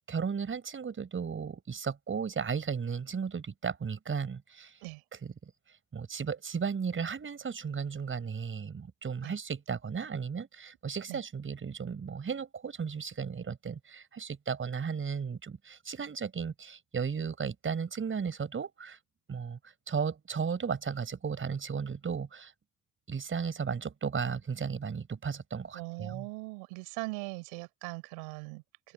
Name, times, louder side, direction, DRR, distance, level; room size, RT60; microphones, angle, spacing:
voice 1, 0.0-4.8 5.1-5.5 5.9-19.0 19.3-22.5 23.1-26.3, right 6 dB, 40° right, 6.0 m, -35 dB
voice 2, 25.7-28.9, right 31 dB, 85° right, 4.8 m, -40 dB
supercardioid pair, 70°, 33 cm